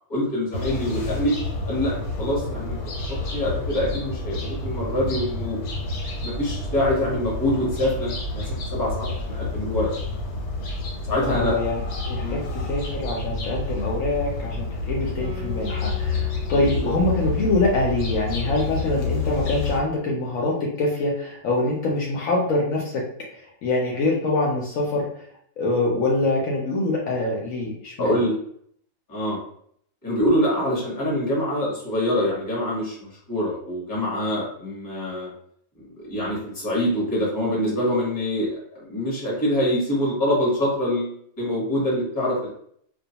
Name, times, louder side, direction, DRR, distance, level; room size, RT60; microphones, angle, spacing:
voice 1, 0.1-1.4 1.7-2.8 3.1-5.6 6.2-9.9 11.1-11.6 12.2-12.4 16.5-16.9 28.0-28.4 29.1-29.4 30.0-35.3 36.0-38.5 38.9-42.5, left 1 dB, 15° left, -5 dB, 0.8 m, -25 dB
sound 1, 0.5-19.8, left 3 dB, 90° left, 1.2 m, -29 dB
voice 2, 11.2-11.8 12.1-23.0 23.3-25.1 25.6-28.1, left 2 dB, 70° left, -2 dB, 0.9 m, -24 dB
Guitar, 15.2-20.1, left 5 dB, 70° right, 0.5 m, -43 dB
2.4 x 2.2 x 2.8 m, 0.66 s
omnidirectional pair, 1.6 m